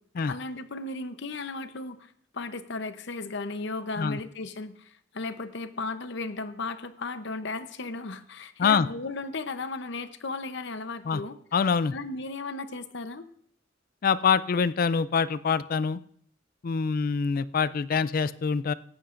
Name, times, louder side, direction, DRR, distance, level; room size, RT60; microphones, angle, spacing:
voice 1, 0.3-2.1 2.3-11.4 11.9-13.2, left 3 dB, 65° left, 10 dB, 0.8 m, -35 dB
voice 2, 11.5-11.9 14.0-16.0 16.6-18.7, left 5 dB, 45° left, 16 dB, 0.4 m, -25 dB
17.5 x 13.5 x 2.5 m, 0.64 s
head